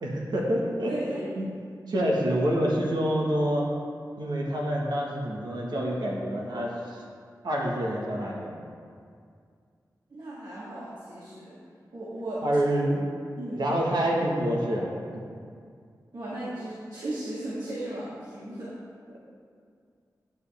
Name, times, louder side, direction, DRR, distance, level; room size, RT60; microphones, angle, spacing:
voice 1, 0.0-1.0 1.4-1.5 1.9-3.7 4.2-7.0 7.4-8.5 12.4-13.0 13.5-15.2, right 1 dB, 85° right, -3 dB, 1.6 m, -27 dB
voice 2, 0.9-1.3 10.1-11.6 11.9-12.4 13.4-13.6 16.1-18.7, right 1 dB, 70° right, -9 dB, 1.8 m, -36 dB
9.5 x 7.4 x 3.5 m, 2.2 s
cardioid pair, 50°, 7 cm